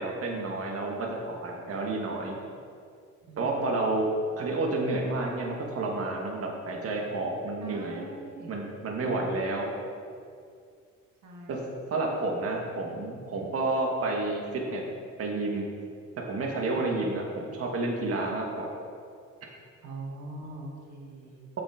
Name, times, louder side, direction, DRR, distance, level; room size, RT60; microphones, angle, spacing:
voice 1, 0.0-2.4 3.4-4.1 4.4-8.0 8.5-9.7 11.5-11.6 11.9-14.8 15.2-15.7 16.3-18.7, right 2 dB, 50° right, 0 dB, 1.3 m, -30 dB
voice 2, 3.3-3.9 7.6-8.5 11.2-11.8 16.7-16.9 19.8-21.4, right 2 dB, 75° right, -1 dB, 1.3 m, -43 dB
7.0 x 5.4 x 4.8 m, 2.3 s
cardioid pair, 90°, 30 cm